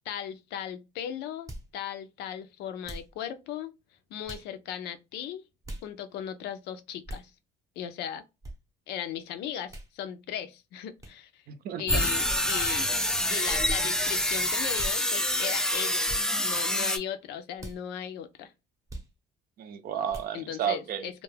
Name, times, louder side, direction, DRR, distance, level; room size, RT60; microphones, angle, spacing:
voice 1, 0.0-3.7 4.1-5.4 5.8-7.3 7.8-8.2 8.9-11.4 11.8-12.8 13.3-16.0 16.4-18.5 20.3-21.2, left 9 dB, 85° left, 0.5 m, -37 dB
sound 1, 1.5-1.7 2.8-3.1 4.2-4.5 5.6-5.9 7.0-7.3 8.4-8.6 9.7-9.9 11.0-11.2 12.2-12.5 13.4-13.7 14.8-14.9 16.0-16.2 17.6-17.8 18.9-19.1 20.1-20.3, right 1 dB, 20° right, 0.7 m, -40 dB
voice 2, 11.5-12.0 19.6-21.1, right 9 dB, 60° right, 0.5 m, -32 dB
sound 2, 11.9-17.0, left 1 dB, 5° left, 0.3 m, -27 dB
2.3 x 2.1 x 3.2 m
cardioid pair, 110°, 17 cm